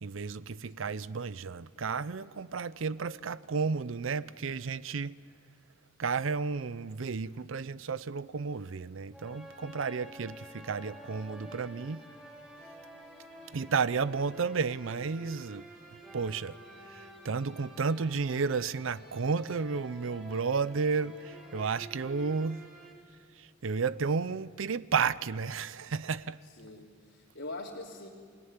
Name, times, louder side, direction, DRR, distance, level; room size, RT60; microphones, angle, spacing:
voice 1, 0.0-5.2 6.0-12.0 13.5-15.6 16.1-16.6 16.9-22.6 23.4-26.4, right 5 dB, 70° right, 0.6 m, -32 dB
sound 1, 9.1-22.9, right 1 dB, 5° right, 4.4 m, -50 dB
voice 2, 26.6-28.1, left 2 dB, 65° left, 2.9 m, -43 dB
27.5 x 18.0 x 9.7 m
head